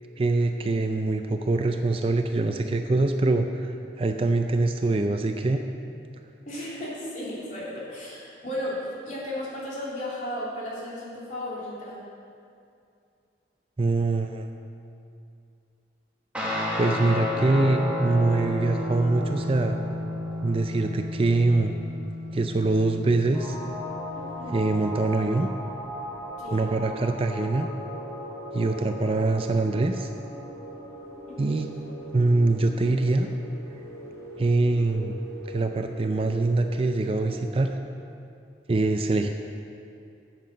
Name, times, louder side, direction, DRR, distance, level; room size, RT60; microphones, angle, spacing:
voice 1, 0.2-5.6 13.8-14.5 16.8-19.8 20.4-21.8 22.3-23.6 24.5-25.5 26.5-27.7 28.5-30.1 31.4-31.7 32.1-33.3 34.4-35.1 35.5-37.7 38.7-39.3, right 2 dB, 30° right, 6 dB, 0.4 m, -24 dB
voice 2, 6.5-12.1 24.2-24.6 26.4-26.7 31.4-31.6, left 1 dB, 40° left, -6 dB, 2.7 m, -35 dB
Guitar, 16.3-25.1, left 1 dB, 5° right, 1.4 m, -32 dB
sound 1, 23.3-37.7, equal, 15° left, 1.5 m, -39 dB
9.1 x 7.6 x 6.4 m, 2.5 s
head